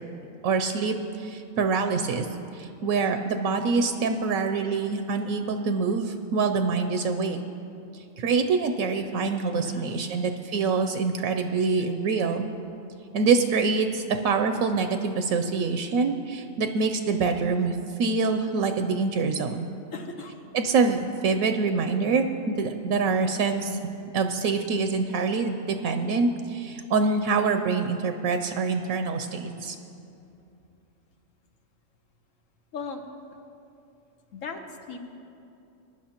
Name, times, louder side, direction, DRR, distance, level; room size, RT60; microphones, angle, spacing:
voice 1, 0.4-2.3 2.5-7.4 7.9-12.4 13.1-19.7 20.5-23.8 24.1-29.8, right 4 dB, 80° right, 6 dB, 1.0 m, -25 dB
voice 2, 9.6-10.2 19.9-20.4 29.4-29.7 32.7-33.0 34.3-34.6 34.9-35.0, left 4 dB, 70° left, 5 dB, 1.3 m, -38 dB
21.5 x 11.0 x 2.9 m, 2.7 s
omnidirectional pair, 1.4 m